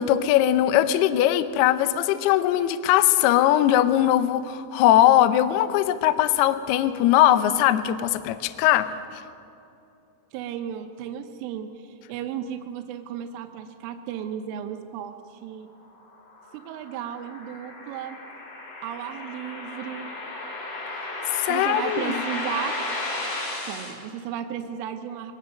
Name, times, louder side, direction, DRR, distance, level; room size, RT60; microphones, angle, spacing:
voice 1, 0.0-9.2 21.3-22.1, left 12 dB, 85° left, 11 dB, 2.3 m, -20 dB
voice 2, 10.3-15.7 16.5-18.2 18.8-20.1 21.5-22.7 23.7-25.3, right 9 dB, 85° right, 5 dB, 3.4 m, -34 dB
sound 1, 16.1-23.9, left 2 dB, 45° left, 6.4 m, -34 dB
23.0 x 18.5 x 6.6 m, 2.7 s
omnidirectional pair, 5.7 m